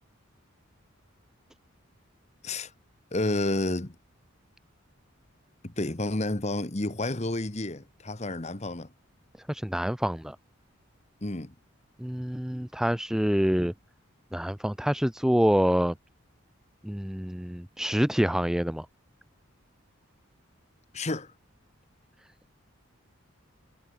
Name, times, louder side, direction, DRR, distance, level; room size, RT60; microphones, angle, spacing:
voice 1, 3.1-3.9 5.6-8.9 11.2-11.5 20.9-21.3, left 2 dB, 30° left, 1.3 m, -30 dB
voice 2, 9.5-10.4 12.0-13.7 14.3-15.9 16.8-18.9, equal, ahead, 0.4 m, -26 dB
head